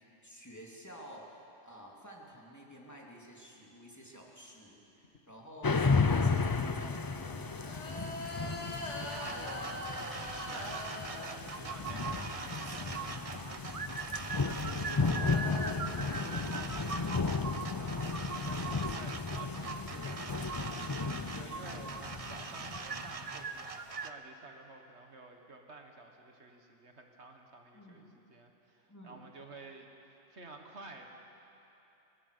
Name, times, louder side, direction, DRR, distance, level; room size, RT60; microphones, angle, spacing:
voice 1, 0.2-8.2 15.0-15.4 27.7-28.1 28.9-29.2, equal, 15° left, -3 dB, 2.9 m, -51 dB
sound 1, 5.0-12.0 12.4-13.7 14.3-17.0 18.2-18.3 18.6-19.5, left 1 dB, 80° left, 2.6 m, -45 dB
sound 2, 5.6-23.4, left 4 dB, 35° left, 0.3 m, -34 dB
voice 2, 8.0-8.4 8.7-31.1, right 3 dB, 70° right, 3 dB, 1.9 m, -52 dB
sound 3, 9.1-24.1, right 5 dB, 35° right, 0.7 m, -41 dB
23.5 x 19.0 x 6.8 m, 2.9 s
omnidirectional pair, 1.2 m